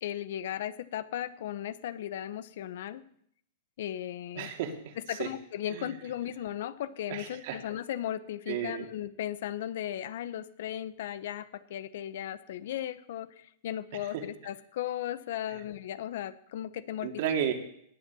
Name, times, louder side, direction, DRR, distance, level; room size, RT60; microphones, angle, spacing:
voice 1, 0.0-3.0 3.8-4.5 5.1-17.1, left 11 dB, 70° left, 15 dB, 0.9 m, -36 dB
voice 2, 4.4-5.3 5.7-5.9 7.1-7.6 8.5-8.9 14.1-14.2 15.5-15.6 17.0-17.5, right 9 dB, 60° right, 4 dB, 2.5 m, -33 dB
19.0 x 7.4 x 7.0 m, 0.67 s
supercardioid pair, 145°, 0 cm